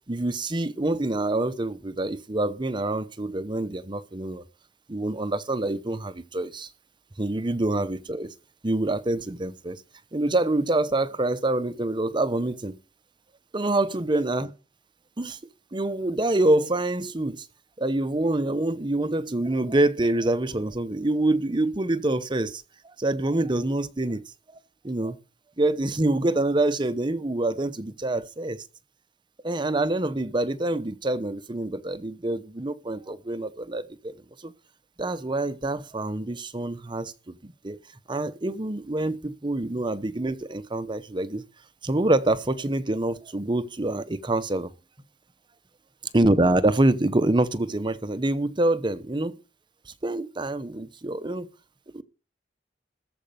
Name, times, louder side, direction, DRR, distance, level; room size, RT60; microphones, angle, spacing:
voice 1, 0.1-4.4 4.9-6.7 7.2-8.3 8.6-9.8 10.1-12.8 13.5-14.5 15.2-15.4 15.7-17.5 17.8-22.6 23.0-24.2 24.8-25.2 25.6-28.6 29.4-34.1 34.4-34.5 35.0-37.8 38.1-41.4 41.8-44.7 46.1-49.4 50.0-51.5 51.9-52.0, right 2 dB, 25° right, 0.9 m, -26 dB
14.0 x 5.2 x 9.1 m
head